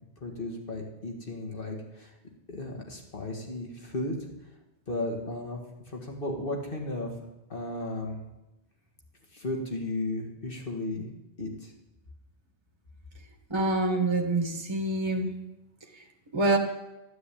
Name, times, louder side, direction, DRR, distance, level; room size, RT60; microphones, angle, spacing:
voice 1, 0.2-2.1 2.5-4.1 4.9-5.6 5.9-7.1 7.5-8.2 9.3-11.1 11.4-11.7, left 2 dB, 55° left, 2 dB, 2.3 m, -34 dB
voice 2, 13.5-15.3 16.3-16.6, right 2 dB, 25° right, 3 dB, 1.6 m, -26 dB
12.5 x 9.5 x 8.5 m, 1.0 s
omnidirectional pair, 1.1 m